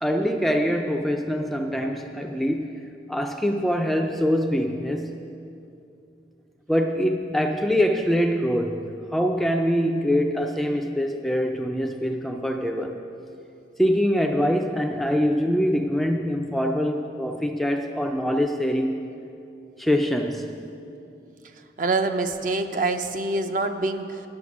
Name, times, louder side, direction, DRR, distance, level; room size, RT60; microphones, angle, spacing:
voice 1, 0.0-2.8 3.1-5.1 6.7-13.0 13.8-19.1 19.8-20.5, equal, ahead, 3 dB, 0.3 m, -24 dB
voice 2, 21.8-24.2, right 3 dB, 45° right, 7 dB, 0.5 m, -25 dB
10.5 x 7.7 x 6.1 m, 2.7 s
head